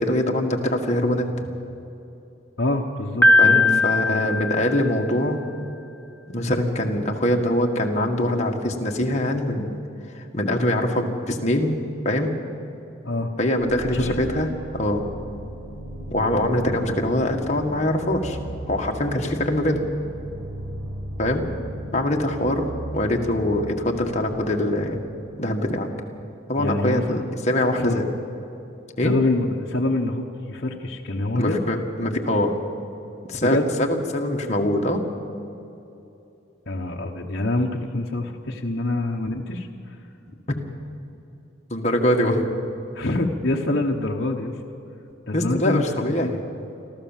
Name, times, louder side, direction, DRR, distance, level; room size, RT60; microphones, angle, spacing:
voice 1, 0.0-1.5 3.4-5.4 6.3-9.8 10.1-11.8 12.1-12.4 13.4-15.0 16.1-18.4 18.7-19.9 21.2-21.4 21.9-22.7 22.9-25.0 25.4-25.9 26.5-28.0 29.0-29.1 31.3-32.6 33.3-35.1 41.7-42.5 45.3-46.4, left 1 dB, 35° left, 1 dB, 1.8 m, -23 dB
voice 2, 2.6-4.4 13.0-13.3 13.9-14.2 26.6-27.2 27.8-28.0 29.0-31.6 33.4-33.7 36.7-40.0 42.9-44.6 45.3-46.3, left 2 dB, 55° left, -1 dB, 1.1 m, -26 dB
Piano, 3.2-5.3, left 2 dB, 10° left, 1.1 m, -19 dB
sound 1, 13.6-25.5, right 1 dB, 30° right, 6.8 m, -36 dB
25.5 x 14.0 x 7.4 m, 2.8 s
head